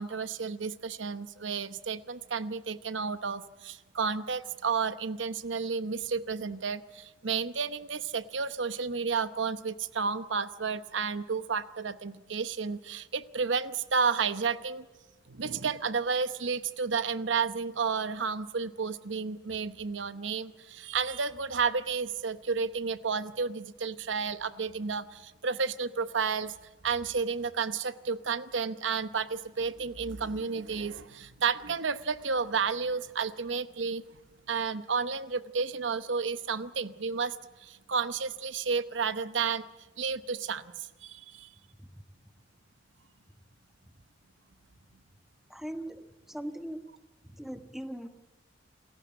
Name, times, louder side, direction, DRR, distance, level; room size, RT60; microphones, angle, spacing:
voice 1, 0.0-14.9 15.3-26.5 26.8-34.0 34.5-39.6 40.0-41.5, right 5 dB, 80° right, 13 dB, 0.9 m, -32 dB
voice 2, 45.5-46.8 47.2-48.1, right 1 dB, ahead, 8 dB, 1.3 m, -40 dB
28.5 x 15.0 x 8.3 m, 1.2 s
head